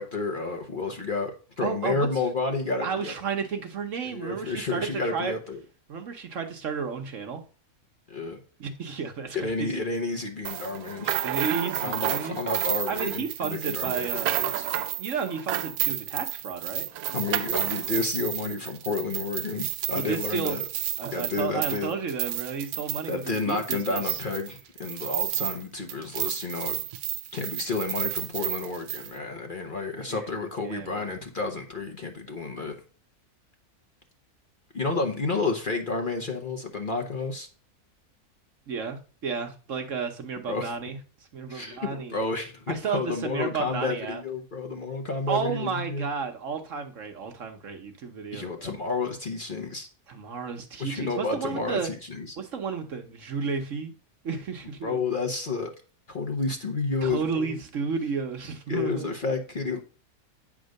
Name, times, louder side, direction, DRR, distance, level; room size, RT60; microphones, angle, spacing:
voice 1, 0.0-3.1 4.0-5.6 8.1-8.4 9.3-11.1 11.8-14.7 17.1-20.6 21.1-21.9 23.1-26.8 27.3-32.7 34.7-37.5 40.5-40.7 41.5-46.1 48.3-49.9 50.8-52.4 54.8-55.7 56.1-57.6 58.7-59.8, left 3 dB, 40° left, 1.0 m, -31 dB
voice 2, 1.6-2.1 2.8-5.3 5.9-7.4 8.6-9.7 11.2-12.4 12.9-14.4 15.0-16.9 19.9-20.6 21.0-24.2 30.1-30.3 30.6-31.2 38.7-41.0 41.3-42.2 42.7-44.2 45.3-48.7 50.1-51.9 52.4-53.9 54.2-55.0 57.0-59.1, right 5 dB, 55° right, 1.3 m, -32 dB
sound 1, 10.4-25.6 25.9-29.1, right 13 dB, 75° right, 1.1 m, -31 dB
9.2 x 3.7 x 6.4 m
omnidirectional pair, 1.6 m